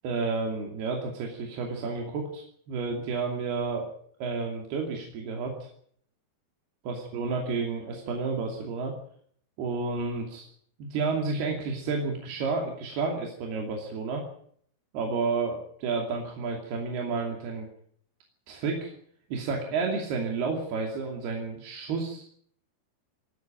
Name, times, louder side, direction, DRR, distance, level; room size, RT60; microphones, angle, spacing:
voice 1, 0.0-3.9 4.2-5.7 6.8-8.9 9.6-10.5 10.8-14.2 14.9-17.7 18.5-18.9 19.3-22.3, right 4 dB, 75° right, 1 dB, 4.7 m, -31 dB
20.5 x 14.5 x 9.1 m, 0.62 s
omnidirectional pair, 4.6 m